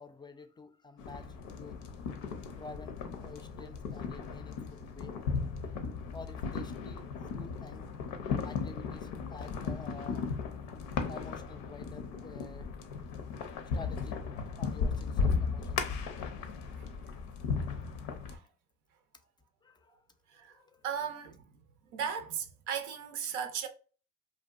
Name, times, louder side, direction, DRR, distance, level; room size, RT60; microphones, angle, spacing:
voice 1, 0.0-1.8 2.5-5.2 6.1-7.8 8.4-10.3 11.1-12.7 13.7-14.2 14.6-16.3 16.9-17.0 19.6-20.0 20.4-20.8, left 3 dB, 15° left, 0.4 m, -50 dB
sound 1, 1.0-18.4, left 5 dB, 75° left, 0.5 m, -36 dB
voice 2, 20.3-21.4 21.9-23.7, right 7 dB, 75° right, 0.5 m, -37 dB
2.6 x 2.3 x 2.3 m
hypercardioid pair, 60°, 31 cm